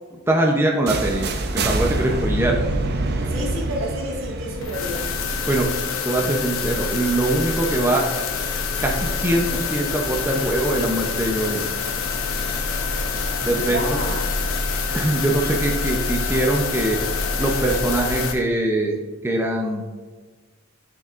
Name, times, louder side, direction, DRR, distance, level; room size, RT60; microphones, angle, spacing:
voice 1, 0.3-1.3 1.5-2.6 5.5-5.7 6.0-8.0 8.8-11.6 13.4-14.0 14.9-17.0 17.4-19.0 19.2-19.8, right 1 dB, 10° right, 0 dB, 0.6 m, -22 dB
sound 1, 0.9-6.7, right 2 dB, 55° right, 0.7 m, -26 dB
voice 2, 3.2-5.0 13.5-14.3, equal, 75° right, -2 dB, 1.9 m, -30 dB
sound 2, 4.6-18.3, left 4 dB, 85° left, 0.8 m, -26 dB
9.0 x 6.6 x 2.5 m, 1.4 s
head